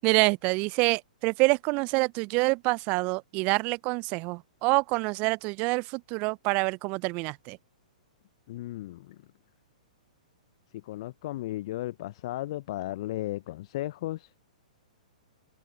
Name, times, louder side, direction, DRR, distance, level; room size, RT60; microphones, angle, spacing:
voice 1, 0.0-7.6, right 28 dB, 35° right, 0.8 m, -26 dB
voice 2, 8.5-9.2 10.7-14.3, left 16 dB, 45° left, 0.9 m, -35 dB
figure-of-eight pair, 110°, 4 cm